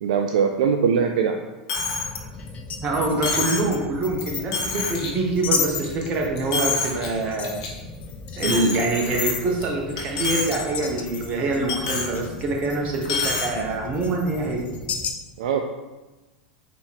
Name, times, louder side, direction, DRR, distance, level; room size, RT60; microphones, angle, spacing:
voice 1, 0.0-1.5 15.4-15.6, right 6 dB, 70° right, 4 dB, 0.3 m, -21 dB
Coin (dropping), 1.7-2.1 2.5-2.6 3.2-3.7 4.2-4.3 4.5-5.1 5.5-6.1 6.4-7.1 7.4-7.7 8.4-9.6 10.0-10.5 10.9-11.0 11.7-12.1 13.0-13.5, left 4 dB, 65° left, 1.0 m, -27 dB
sound 1, 1.8-15.1, left 5 dB, 35° left, 0.5 m, -34 dB
voice 2, 2.8-7.6 8.3-14.7, right 2 dB, 40° right, 0 dB, 1.0 m, -25 dB
4.2 x 3.0 x 3.5 m, 1.1 s
hypercardioid pair, 90°, 4 cm